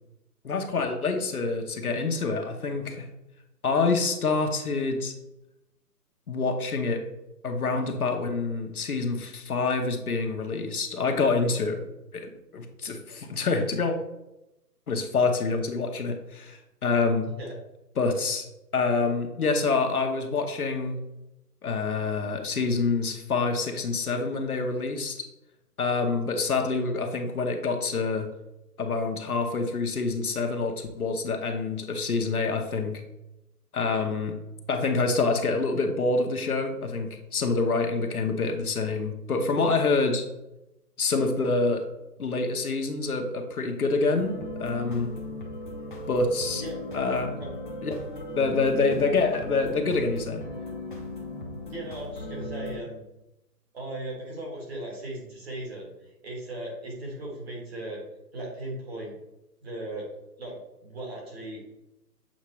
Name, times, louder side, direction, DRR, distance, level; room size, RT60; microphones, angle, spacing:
voice 1, 0.4-3.1 3.6-5.1 6.3-7.0 7.4-11.8 12.1-13.9 14.9-17.3 18.0-18.5 18.7-21.0 21.6-25.2 25.8-28.3 28.8-33.0 33.7-34.3 34.7-40.2 41.0-41.8 42.2-44.3 44.6-45.1 46.1-46.6 46.9-47.3 47.8-47.9 48.3-50.4, left 4 dB, 65° left, 3 dB, 1.0 m, -26 dB
sound 1, 44.2-52.8, left 1 dB, 30° left, 0.8 m, -37 dB
voice 2, 51.7-53.0 53.7-55.9 56.2-58.0 58.3-59.1 59.6-60.1 60.4-61.6, right 1 dB, 40° right, -3 dB, 2.1 m, -37 dB
7.4 x 4.3 x 3.1 m, 0.92 s
hypercardioid pair, 175°, 48 cm